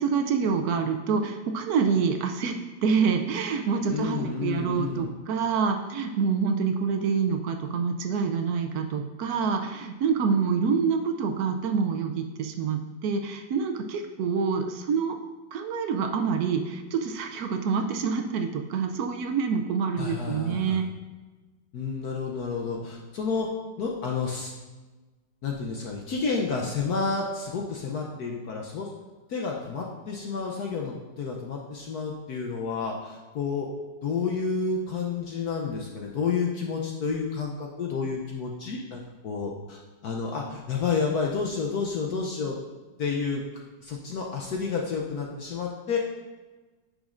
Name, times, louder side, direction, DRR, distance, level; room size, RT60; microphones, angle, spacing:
voice 1, 0.0-2.6 2.8-15.2 15.5-20.9, right 5 dB, 85° right, 4 dB, 0.8 m, -26 dB
voice 2, 3.9-5.1 20.0-20.8 21.7-23.5 23.8-24.5 25.4-28.9 29.3-33.7 34.0-42.6 43.0-43.4 43.8-46.0, left 5 dB, 65° left, 0 dB, 1.0 m, -30 dB
10.0 x 6.3 x 2.5 m, 1.3 s
omnidirectional pair, 2.2 m